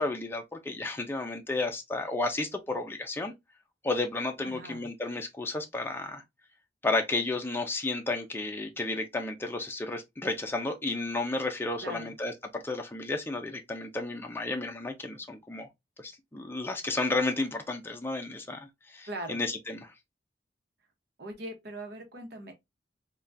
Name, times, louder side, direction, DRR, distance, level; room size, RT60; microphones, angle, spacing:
voice 1, 0.0-3.3 3.8-6.2 6.8-15.7 16.0-19.9, left 2 dB, 15° left, 0.4 m, -32 dB
voice 2, 4.4-4.9 11.8-12.1 19.1-19.4 21.2-22.5, right 1 dB, 65° right, 0.9 m, -40 dB
3.4 x 2.2 x 2.5 m
head